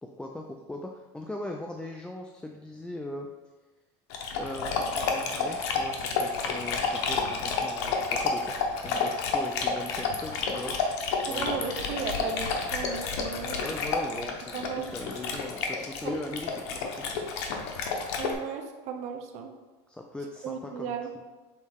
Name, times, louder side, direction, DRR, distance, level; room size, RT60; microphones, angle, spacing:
voice 1, 0.0-3.3 4.4-10.8 11.3-11.5 11.8-12.0 13.6-17.1 19.9-20.9, left 1 dB, 5° left, 2 dB, 0.4 m, -39 dB
Dog, 4.1-18.3, left 4 dB, 80° left, 1.0 m, -30 dB
voice 2, 11.2-13.6 14.5-14.9 16.0-16.1 18.2-19.5 20.4-21.1, right 6 dB, 50° right, 4 dB, 0.7 m, -35 dB
6.5 x 4.0 x 3.6 m, 1.2 s
supercardioid pair, 130°, 14 cm